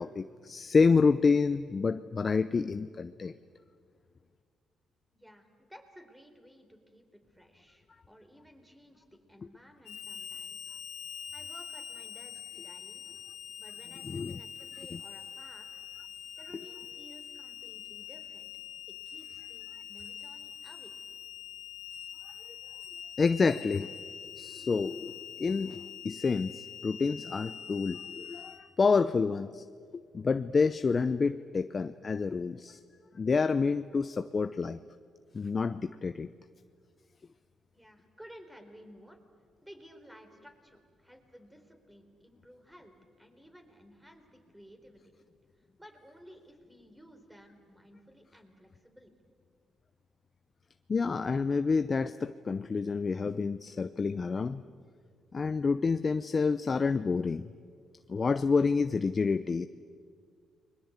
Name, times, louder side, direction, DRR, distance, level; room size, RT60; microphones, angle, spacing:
voice 1, 0.0-3.3 14.0-14.4 14.9-15.0 23.2-23.9 24.4-29.6 29.9-32.8 33.1-34.8 35.3-36.3 50.9-54.6 55.3-57.5 58.1-59.7, left 4 dB, 35° left, 11 dB, 0.6 m, -28 dB
voice 2, 5.1-10.8 11.3-13.0 13.6-15.8 16.4-18.5 18.9-20.9 37.7-39.2 39.6-45.1 45.6-49.1, equal, 5° right, 6 dB, 4.0 m, -55 dB
Harmonica, 9.8-28.6, left 8 dB, 75° left, 2.2 m, -44 dB
29.5 x 22.0 x 8.2 m, 2.1 s
cardioid pair, 90°, 0 cm